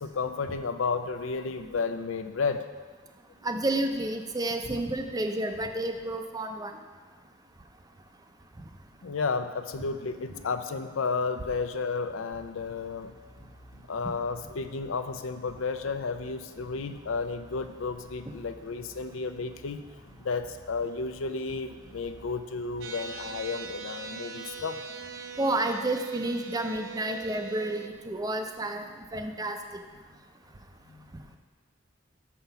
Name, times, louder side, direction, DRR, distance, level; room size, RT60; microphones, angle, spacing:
voice 1, 0.0-2.7 9.0-13.1 13.9-19.8 20.2-24.8, left 4 dB, 85° left, 9 dB, 0.5 m, -32 dB
voice 2, 3.4-6.7 25.4-29.6, right 1 dB, 20° right, 6 dB, 0.5 m, -30 dB
sound 1, 12.3-23.8, equal, 45° left, 1.2 m, -53 dB
sound 2, 22.8-27.9, right 5 dB, 70° right, 0.6 m, -41 dB
6.8 x 5.8 x 5.7 m, 1.4 s
head